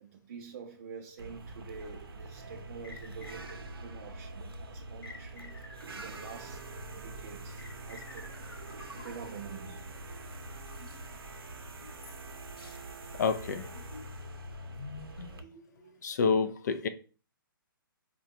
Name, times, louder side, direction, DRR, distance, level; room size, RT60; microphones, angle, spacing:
voice 1, 0.0-5.6 5.9-6.6 7.0-8.4 9.0-9.9, right 5 dB, 40° right, 0.4 m, -47 dB
sound 1, 1.2-15.4, right 2 dB, 90° right, 0.6 m, -44 dB
sound 2, 2.8-3.9 5.0-6.8 7.6-9.6 10.3-11.1 11.6-12.3 12.6-12.8 13.3-13.6 14.2-16.1, left 3 dB, 90° left, 1.2 m, -50 dB
voice 2, 13.1-14.3 16.0-16.9, left 5 dB, 50° left, 0.3 m, -30 dB
4.7 x 2.2 x 2.7 m
hypercardioid pair, 165°, 12 cm